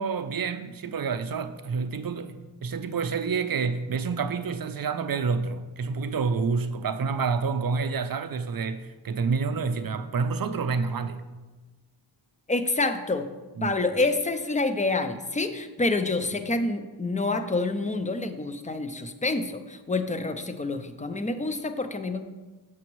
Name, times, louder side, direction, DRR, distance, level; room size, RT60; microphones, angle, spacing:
voice 1, 0.0-11.2 13.6-13.8, right 5 dB, 45° right, 9 dB, 0.5 m, -28 dB
voice 2, 12.5-13.3 13.6-22.2, left 3 dB, 15° left, 9 dB, 0.4 m, -27 dB
7.0 x 6.1 x 3.0 m, 1.2 s
wide cardioid pair, 60°, 48 cm